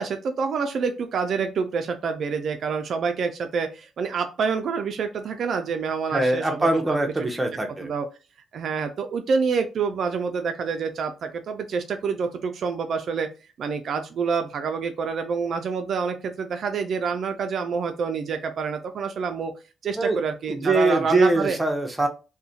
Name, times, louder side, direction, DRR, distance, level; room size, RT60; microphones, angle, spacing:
voice 1, 0.0-7.0 7.8-8.1 8.5-13.3 13.6-19.5 19.8-21.6, right 5 dB, 60° right, 6 dB, 0.3 m, -27 dB
voice 2, 6.1-7.9 19.9-20.2 20.5-22.1, right 2 dB, 15° right, 3 dB, 0.6 m, -23 dB
2.4 x 2.1 x 2.6 m, 0.32 s
cardioid pair, 90°, 0 cm